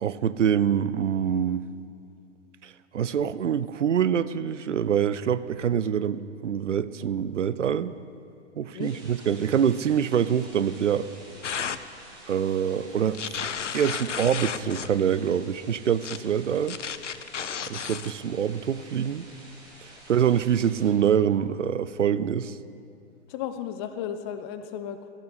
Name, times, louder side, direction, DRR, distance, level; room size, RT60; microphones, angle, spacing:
voice 1, 0.0-1.6 2.6-7.9 8.6-11.1 12.3-16.8 17.7-19.3 19.8-22.6, right 8 dB, 85° right, 15 dB, 0.5 m, -25 dB
sound 1, 8.8-20.9, right 1 dB, 10° right, 2.9 m, -49 dB
sound 2, 11.4-11.8 13.1-14.9 16.0-16.2 16.7-18.1, left 7 dB, 90° left, 0.5 m, -33 dB
voice 2, 23.3-25.1, left 9 dB, 25° left, 10 dB, 0.4 m, -34 dB
14.0 x 7.6 x 5.7 m, 2.5 s
figure-of-eight pair, 110°, 36 cm